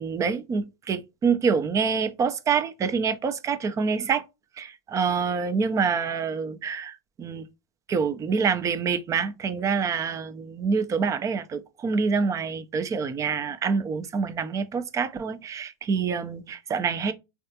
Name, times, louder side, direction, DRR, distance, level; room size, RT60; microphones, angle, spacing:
voice 1, 0.0-4.2 4.6-7.5 7.9-17.1, right 5 dB, 20° right, 0.4 m, -26 dB
3.3 x 2.3 x 2.7 m
hypercardioid pair, 115°, 14 cm